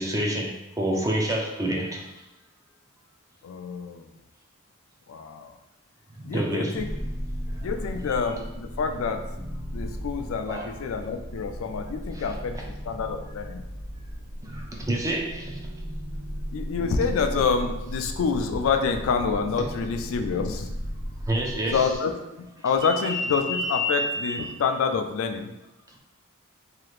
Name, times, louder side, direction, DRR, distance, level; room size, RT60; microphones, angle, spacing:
voice 1, 0.0-2.1 6.1-6.9 7.3-7.7 10.5-10.7 14.4-15.7 21.3-21.8 23.0-24.5, equal, 15° right, 0 dB, 0.4 m, -28 dB
voice 2, 3.4-4.1 5.1-5.6 6.2-6.9 7.6-9.3 9.7-13.6 16.5-20.7 21.7-25.5, left 5 dB, 70° left, 6 dB, 0.3 m, -27 dB
sound 1, 6.8-22.0, equal, 50° right, 0.8 m, -36 dB
2.8 x 2.4 x 3.1 m, 0.94 s
head